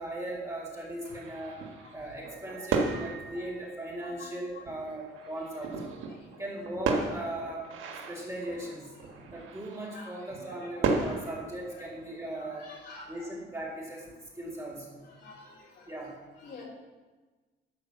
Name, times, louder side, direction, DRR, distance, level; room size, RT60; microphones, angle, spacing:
voice 1, 0.0-1.6 1.9-6.0 6.4-7.7 8.1-8.9 9.3-12.7 13.1-14.1 14.3-15.0 15.8-16.1, right 1 dB, 15° right, -3 dB, 3.9 m, -38 dB
sound 1, 1.0-3.5 4.1-4.2 4.5-12.3, right 4 dB, 85° right, 1.5 m, -35 dB
sound 2, 2.2-4.8, right 5 dB, 35° right, 1.8 m, -50 dB
voice 2, 12.3-13.1 15.2-15.4 16.4-16.6, left 4 dB, 65° left, -5 dB, 3.9 m, -47 dB
12.0 x 4.9 x 7.3 m, 1.3 s
cardioid pair, 90°, 20 cm